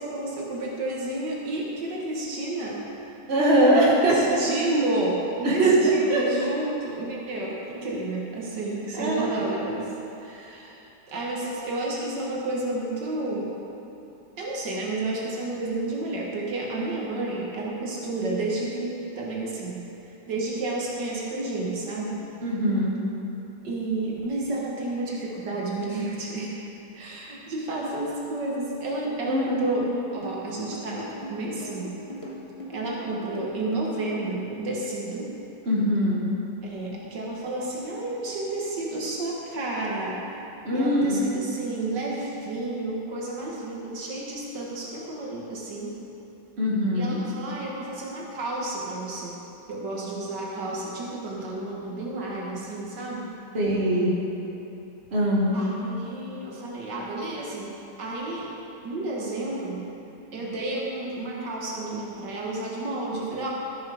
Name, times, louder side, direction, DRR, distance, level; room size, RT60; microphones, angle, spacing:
voice 1, 0.0-2.8 3.7-9.9 10.2-10.8 11.1-13.5 14.4-19.8 20.3-22.3 23.6-26.5 26.9-32.0 32.7-35.3 36.6-40.2 40.7-46.0 46.9-49.4 49.7-53.3 55.5-58.5 58.8-59.9 60.3-63.5, right 2 dB, 80° right, -4 dB, 2.0 m, -31 dB
voice 2, 3.3-4.2 5.4-5.8 6.1-6.2 8.9-9.6 11.4-11.5 22.4-23.0 29.3-29.7 35.7-36.3 40.6-41.2 46.6-47.2 53.5-54.1 55.1-55.6, right 1 dB, 40° right, -5 dB, 1.9 m, -22 dB
sound 1, 30.2-34.2, left 1 dB, 20° left, 1.0 m, -39 dB
13.0 x 7.0 x 4.9 m, 2.9 s
omnidirectional pair, 1.8 m